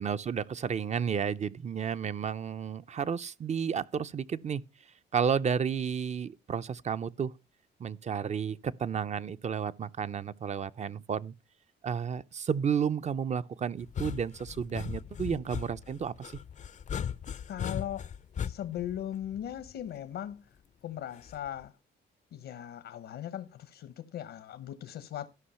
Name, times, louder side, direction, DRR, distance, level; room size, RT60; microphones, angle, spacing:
voice 1, 0.0-4.6 5.1-7.3 7.8-11.3 11.8-16.3, right 7 dB, 35° right, 0.5 m, -32 dB
sound 1, 13.8-19.9 21.3-21.7, left 8 dB, 40° left, 0.5 m, -38 dB
voice 2, 17.5-18.1 18.4-20.4 20.8-21.7 22.3-25.3, left 11 dB, 75° left, 0.9 m, -38 dB
13.0 x 5.5 x 5.5 m
cardioid pair, 90°, 20 cm